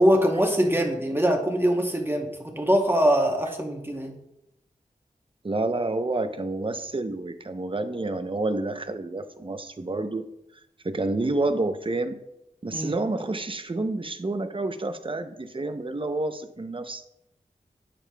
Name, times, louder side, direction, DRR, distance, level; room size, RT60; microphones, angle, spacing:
voice 1, 0.0-4.2 12.7-12.9, equal, 15° right, 2 dB, 0.9 m, -23 dB
voice 2, 5.4-10.3 10.8-12.2 12.6-17.0, right 2 dB, 35° right, 9 dB, 0.6 m, -29 dB
8.5 x 7.3 x 2.3 m, 0.83 s
wide cardioid pair, 60°, 15 cm